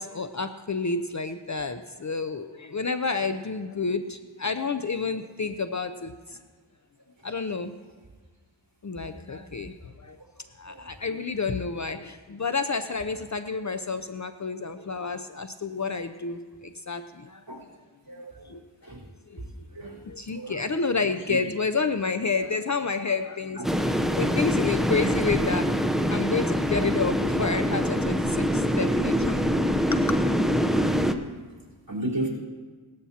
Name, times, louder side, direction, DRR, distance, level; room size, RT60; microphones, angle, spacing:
voice 1, 0.0-6.4 7.2-7.7 8.8-9.7 10.0-10.2 10.6-17.4 18.5-18.9 19.3-19.4 19.8-25.7 26.1-29.5 29.8-30.2, left 4 dB, 40° left, 9 dB, 0.6 m, -30 dB
voice 2, 20.3-20.7 21.3-21.4 31.9-32.3, right 1 dB, 45° right, -5 dB, 4.1 m, -32 dB
sound 1, 23.6-31.1, equal, ahead, 0.7 m, -24 dB
18.0 x 13.0 x 2.8 m, 1.4 s
wide cardioid pair, 50°, 47 cm